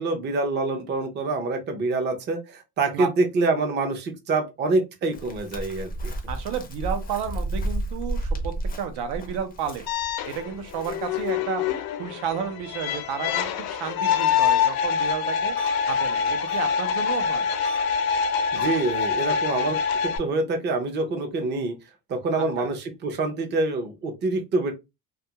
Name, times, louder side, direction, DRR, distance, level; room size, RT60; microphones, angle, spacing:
voice 1, 0.0-5.9 18.5-21.7 22.1-24.7, right 3 dB, 30° right, 0.5 m, -26 dB
Chirp tweet, 5.1-11.3, right 1 dB, 25° left, 0.4 m, -32 dB
voice 2, 6.3-9.8 10.3-11.6 12.0-15.5 15.9-17.5 22.3-22.7, right 7 dB, 90° right, 0.7 m, -32 dB
sound 1, 9.9-20.2, left 7 dB, 70° left, 0.6 m, -25 dB
sound 2, 14.4-14.5 15.0-15.1 15.6-15.7 16.5-16.6 17.6-17.8 18.6-18.7, right 4 dB, 50° right, 0.8 m, -42 dB
2.3 x 2.2 x 2.8 m
cardioid pair, 165°, 38 cm